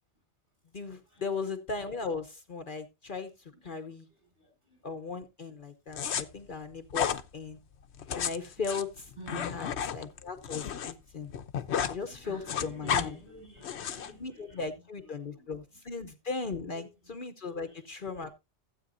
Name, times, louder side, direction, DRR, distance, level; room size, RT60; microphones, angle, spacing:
voice 1, 0.7-4.1 4.8-7.6 8.1-11.3 11.9-13.2 14.2-18.3, left 4 dB, 50° left, 1.0 m, -37 dB
voice 2, 4.4-4.8 6.0-6.2 9.2-9.6 12.0-14.7 15.3-15.5 16.4-16.8 18.1-18.3, equal, 50° right, 8.1 m, -47 dB
sound 1, 5.9-6.2 6.9-7.2 7.9-10.9 11.2-12.0 12.2-13.1 13.6-14.1, left 8 dB, 75° left, 1.0 m, -32 dB
15.0 x 8.5 x 2.6 m
omnidirectional pair, 1.1 m